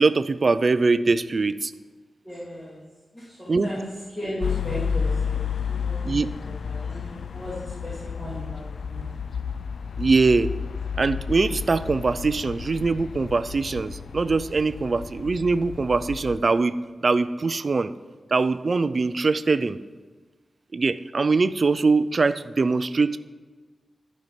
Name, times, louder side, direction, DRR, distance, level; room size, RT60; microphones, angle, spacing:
voice 1, 0.0-1.7 3.5-3.7 6.0-6.3 10.0-10.5 11.0-16.8 17.0-17.9 18.3-19.8 20.7-23.2, right 3 dB, 40° right, 13 dB, 0.4 m, -22 dB
voice 2, 2.2-2.8 3.1-5.4 5.7-9.1, equal, 20° left, -7 dB, 2.6 m, -36 dB
sound 1, 4.4-16.4, left 6 dB, 70° left, 0.4 m, -31 dB
12.0 x 5.3 x 7.4 m, 1.4 s
wide cardioid pair, 170°, 0 cm